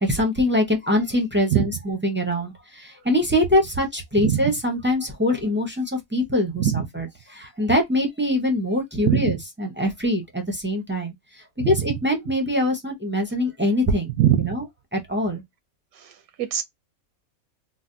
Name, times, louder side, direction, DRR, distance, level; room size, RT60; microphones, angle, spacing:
voice 1, 0.0-14.1 14.4-14.6 14.9-15.4, left 1 dB, 15° right, 0.4 m, -23 dB
voice 2, 4.2-4.5 6.6-6.8 9.0-9.3 11.6-11.7 14.2-14.6 16.0-16.1 16.4-16.6, right 10 dB, 80° right, 1.0 m, -21 dB
3.9 x 2.1 x 2.5 m
omnidirectional pair, 1.5 m